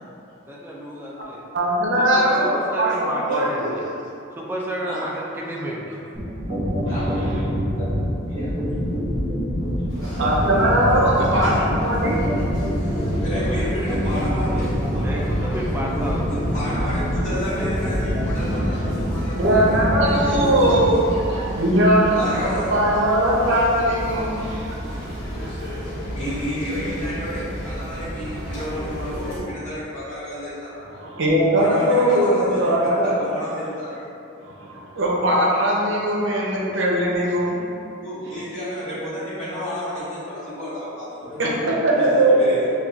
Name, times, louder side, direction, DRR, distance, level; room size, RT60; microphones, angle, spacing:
voice 1, 0.5-1.5 2.0-3.7 4.3-6.0 15.0-16.3, right 1 dB, 10° right, -3 dB, 0.3 m, -31 dB
voice 2, 1.5-3.7 6.8-6.9 10.0-12.3 19.4-21.2 21.5-25.1 30.9-33.1 34.4-37.6 41.4-42.4, right 1 dB, 65° right, -4 dB, 0.6 m, -20 dB
sound 1, 6.1-20.9, equal, 30° right, 1.1 m, -25 dB
voice 3, 6.9-7.4 7.8-7.9 8.3-8.5 11.4-11.6 12.8-15.4 16.3-20.1 22.1-22.7 26.1-30.8 31.5-34.0 38.0-41.4 41.9-42.7, equal, 35° left, -13 dB, 1.4 m, -32 dB
sound 2, 9.9-29.4, equal, 70° left, 1.2 m, -32 dB
5.3 x 2.4 x 2.3 m, 2.8 s
head